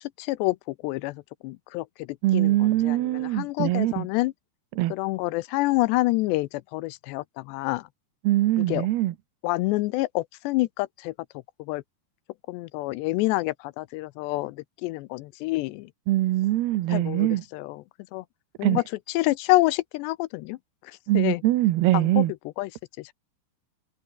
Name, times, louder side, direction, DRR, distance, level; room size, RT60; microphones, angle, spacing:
voice 1, 0.0-2.1 2.3-4.3 4.9-7.9 8.6-8.9 9.4-11.1 11.6-11.8 12.5-15.9 16.9-17.8 18.1-18.2 18.6-18.8 19.1-20.6 20.9-21.4 21.9-22.3 22.6-22.7 23.0-23.1, left 20 dB, 80° left, 2.7 m, -27 dB
voice 2, 2.2-4.1 4.8-4.9 8.2-9.1 16.1-17.4 18.6-18.8 21.1-22.3, right 15 dB, 70° right, 2.9 m, -22 dB
omnidirectional pair, 5.1 m